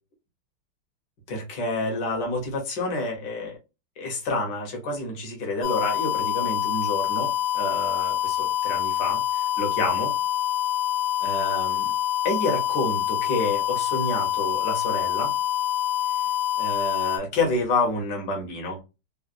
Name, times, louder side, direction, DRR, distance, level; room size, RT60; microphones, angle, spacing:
voice 1, 1.3-3.6 4.0-10.1 11.2-11.9 12.3-15.3 16.6-18.8, left 2 dB, 60° left, 1 dB, 1.7 m, -28 dB
sound 1, 5.6-17.2, left 12 dB, 75° left, 1.4 m, -26 dB
4.1 x 2.2 x 2.5 m, 0.27 s
omnidirectional pair, 2.2 m